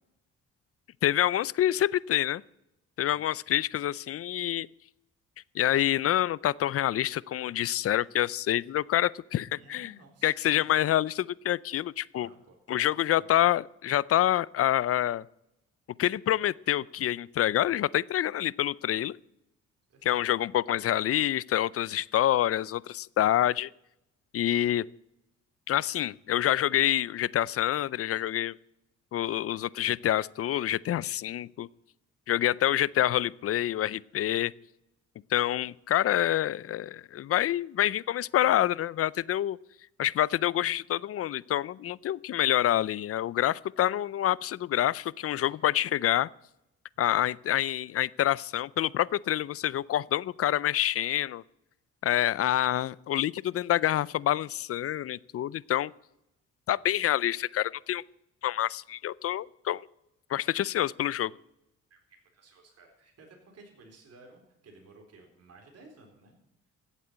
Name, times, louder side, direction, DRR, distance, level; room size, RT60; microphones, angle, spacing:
voice 1, 1.0-2.4 3.0-4.7 5.5-9.9 10.2-12.3 12.7-15.2 16.0-19.2 20.0-23.7 24.3-24.8 25.7-28.5 29.1-31.7 32.3-34.5 35.3-39.6 40.0-46.3 47.0-51.4 52.0-55.9 56.7-58.0 58.4-59.9 60.3-61.3, left 12 dB, 50° left, 23 dB, 0.5 m, -27 dB
voice 2, 9.5-10.8 12.1-13.3 19.9-20.3 45.4-45.5 47.0-47.3 52.6-52.9 61.9-66.4, right 2 dB, 55° right, 1 dB, 4.0 m, -56 dB
15.0 x 8.4 x 8.1 m, 0.85 s
cardioid pair, 90°, 30 cm